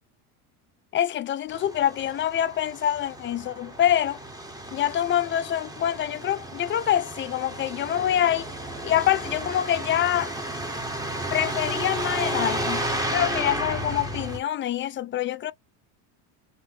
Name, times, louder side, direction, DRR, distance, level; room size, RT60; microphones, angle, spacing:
voice 1, 0.9-4.2 4.7-8.5 8.8-10.3 11.3-12.8 13.1-15.5, left 11 dB, 30° left, 0.4 m, -25 dB
Truck, 1.5-14.4, right 1 dB, 10° right, 1.1 m, -32 dB
3.5 x 2.8 x 3.6 m
supercardioid pair, 115°, 44 cm